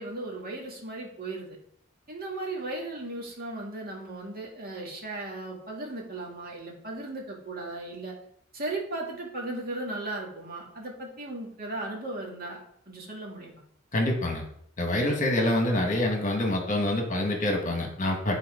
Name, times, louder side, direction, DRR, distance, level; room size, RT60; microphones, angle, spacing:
voice 1, 0.0-1.6 2.1-8.2 8.5-12.6 12.9-13.5, right 2 dB, 45° right, -2 dB, 2.1 m, -36 dB
voice 2, 13.9-14.4 14.8-18.4, left 1 dB, 40° left, 2 dB, 1.5 m, -26 dB
9.9 x 4.3 x 5.0 m, 0.70 s
head